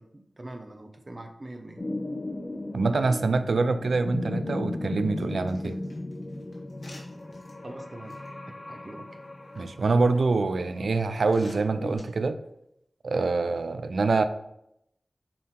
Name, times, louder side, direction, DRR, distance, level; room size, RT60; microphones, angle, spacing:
voice 1, 0.0-1.8 7.6-8.2 8.5-9.0, right 1 dB, 40° right, 5 dB, 0.8 m, -43 dB
sound 1, 1.8-12.0, left 2 dB, 40° left, 0.8 m, -36 dB
voice 2, 2.7-5.8 9.6-12.4 13.0-14.2, right 3 dB, 85° right, 11 dB, 0.4 m, -25 dB
sound 2, 5.2-7.5 8.1-8.3 9.1-9.6 10.3-10.4 11.2-12.0, left 1 dB, 80° left, 1.5 m, -50 dB
6.7 x 3.7 x 3.7 m, 0.79 s
wide cardioid pair, 60°, 0 cm